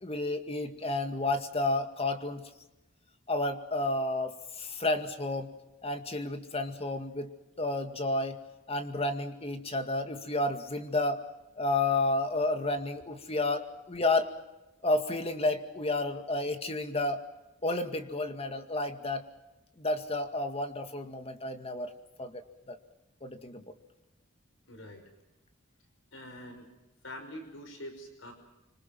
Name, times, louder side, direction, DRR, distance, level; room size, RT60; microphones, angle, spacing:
voice 1, 0.0-2.5 3.3-5.5 5.8-7.3 7.6-8.4 8.7-11.2 11.6-14.3 14.8-17.2 17.6-19.2 19.8-22.4 22.7-22.8 23.2-23.7, left 2 dB, 30° left, 7 dB, 2.1 m, -31 dB
voice 2, 24.7-25.0 26.1-26.7 27.0-28.3, equal, 75° left, 6 dB, 5.5 m, -44 dB
26.0 x 25.5 x 6.1 m, 1.0 s
head